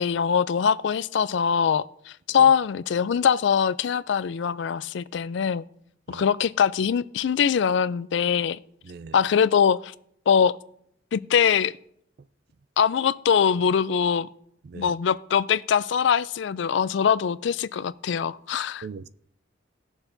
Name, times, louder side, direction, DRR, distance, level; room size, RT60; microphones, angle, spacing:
voice 1, 0.0-5.6 6.1-8.6 9.1-9.9 10.3-10.5 11.1-11.8 12.8-14.3 14.7-18.9, left 7 dB, 60° left, 0.3 m, -22 dB
voice 2, 6.1-6.2 8.9-9.1 14.7-14.9 18.8-19.1, right 5 dB, 55° right, 0.4 m, -39 dB
18.5 x 7.1 x 2.6 m
head